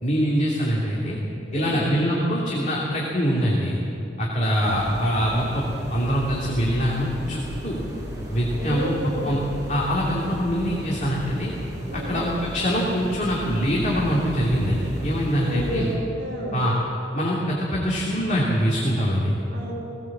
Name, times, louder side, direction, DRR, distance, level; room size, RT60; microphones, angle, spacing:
voice 1, 0.0-1.2 1.5-3.8 4.2-5.6 5.9-7.7 8.3-9.0 9.2-9.4 9.7-11.5 12.1-15.9 16.5-16.7 17.1-19.4, equal, 45° left, -4 dB, 3.0 m, -23 dB
voice 2, 1.5-1.9 8.5-9.4 11.9-12.2 15.4-16.6 19.5-19.7, equal, 55° right, -2 dB, 4.7 m, -31 dB
sound 1, 4.6-16.0, equal, 15° right, 6.2 m, -34 dB
19.5 x 19.0 x 7.5 m, 3.0 s
head